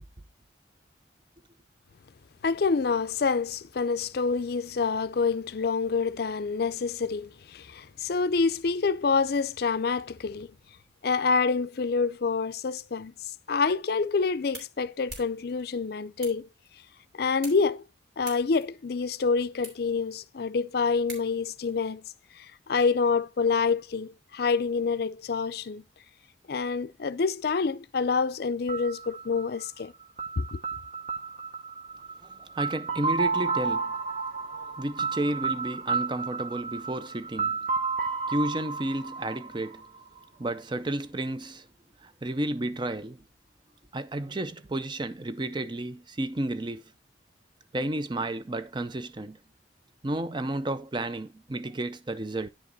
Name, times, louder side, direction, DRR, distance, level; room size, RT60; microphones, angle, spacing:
voice 1, 2.4-10.5 11.0-13.1 13.5-16.5 17.2-17.8 18.2-22.0 22.4-25.8 26.5-29.9 30.4-30.6, left 4 dB, 55° left, 0.5 m, -27 dB
sound 1, 13.9-21.7, right 2 dB, 70° right, 3.5 m, -49 dB
sound 2, 28.7-40.5, right 4 dB, 45° right, 1.2 m, -32 dB
voice 2, 32.2-34.0 34.4-37.6 38.3-39.9 40.4-41.7 42.0-43.2 43.9-46.9 47.7-49.4 50.0-52.5, right 1 dB, 25° right, 0.5 m, -32 dB
10.0 x 5.1 x 4.0 m
head